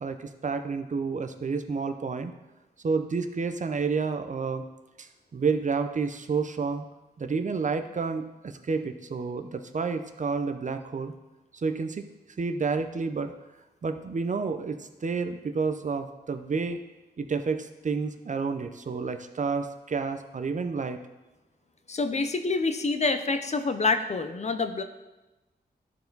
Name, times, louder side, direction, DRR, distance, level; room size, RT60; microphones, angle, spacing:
voice 1, 0.0-2.3 2.8-4.6 5.0-6.8 7.2-11.1 11.5-12.1 12.4-13.3 13.8-16.8 17.2-21.0, right 4 dB, 45° right, 7 dB, 0.6 m, -30 dB
voice 2, 21.9-24.8, left 3 dB, 40° left, 8 dB, 0.6 m, -27 dB
12.0 x 4.6 x 3.9 m, 1.1 s
wide cardioid pair, 100°, 17 cm